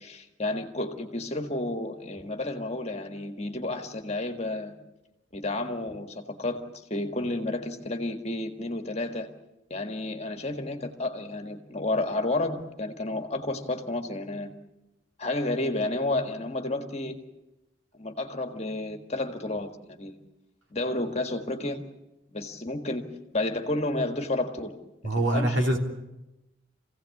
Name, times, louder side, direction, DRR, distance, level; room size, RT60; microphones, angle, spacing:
voice 1, 0.0-4.7 5.3-9.3 9.7-14.5 15.2-17.2 17.9-20.2 20.7-21.8 22.3-23.1 23.3-24.8 25.3-25.7, left 2 dB, 30° left, 5 dB, 1.7 m, -31 dB
voice 2, 25.0-25.8, right 1 dB, 65° right, 1 dB, 3.3 m, -24 dB
25.0 x 16.5 x 8.5 m, 0.97 s
head